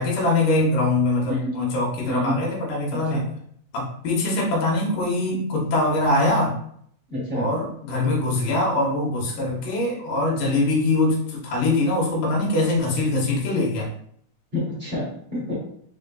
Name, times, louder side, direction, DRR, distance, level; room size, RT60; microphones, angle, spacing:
voice 1, 0.0-3.3 3.7-6.5 7.3-13.9, left 2 dB, 85° left, -3 dB, 2.7 m, -23 dB
voice 2, 2.0-2.4 2.9-3.2 7.1-7.5 14.5-15.5, left 1 dB, 85° right, -6 dB, 0.5 m, -28 dB
4.9 x 3.8 x 2.3 m, 0.66 s
omnidirectional pair, 3.5 m